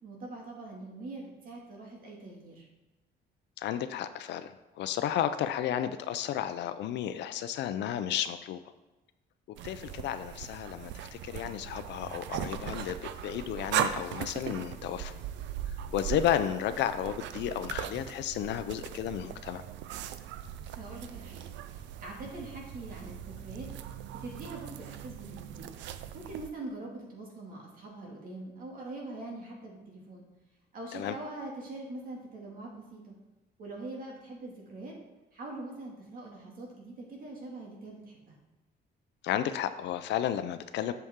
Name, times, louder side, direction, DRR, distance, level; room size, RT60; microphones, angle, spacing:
voice 1, 0.0-2.7 20.6-21.4 22.0-23.7 24.1-25.7 26.1-30.2 30.7-33.1 33.6-35.0 35.3-38.3, right 2 dB, 50° right, -1 dB, 2.3 m, -43 dB
voice 2, 3.6-8.6 9.6-15.1 15.9-19.6 30.9-31.1 39.2-40.9, left 10 dB, 75° left, 11 dB, 0.6 m, -32 dB
sound 1, 9.6-26.5, right 10 dB, 90° right, 0.5 m, -39 dB
8.3 x 7.0 x 3.7 m, 1.0 s
cardioid pair, 140°, 18 cm